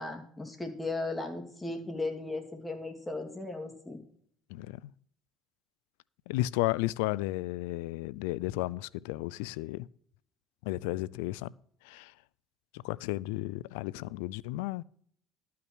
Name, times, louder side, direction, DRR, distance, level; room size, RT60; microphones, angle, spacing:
voice 1, 0.0-4.0, left 2 dB, 10° left, 2.5 m, -36 dB
voice 2, 6.3-9.9 10.6-11.5 11.8-12.1 12.8-14.8, left 18 dB, 85° left, 0.4 m, -33 dB
12.0 x 5.9 x 6.1 m
supercardioid pair, 90°, 0 cm